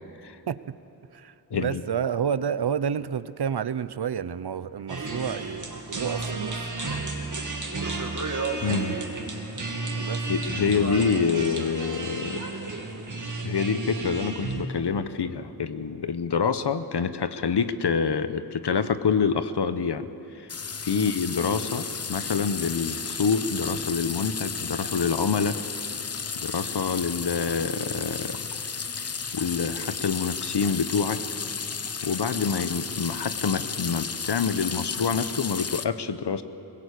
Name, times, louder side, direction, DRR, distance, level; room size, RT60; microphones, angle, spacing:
voice 1, 0.5-0.8 1.1-6.7 9.9-10.2 20.9-21.1 21.5-21.6, right 7 dB, 70° right, 15 dB, 0.7 m, -30 dB
voice 2, 1.5-1.8 8.6-9.0 10.3-12.5 13.4-20.1 20.3-20.5 20.8-25.6 26.3-28.4 29.0-31.2 32.0-36.4, left 6 dB, 75° left, 12 dB, 1.0 m, -27 dB
sound 1, 4.9-14.6, right 3 dB, 45° right, 2.4 m, -32 dB
sound 2, 20.5-35.9, left 5 dB, 35° left, 0.7 m, -33 dB
22.0 x 20.5 x 8.4 m, 2.9 s
wide cardioid pair, 95°, 41 cm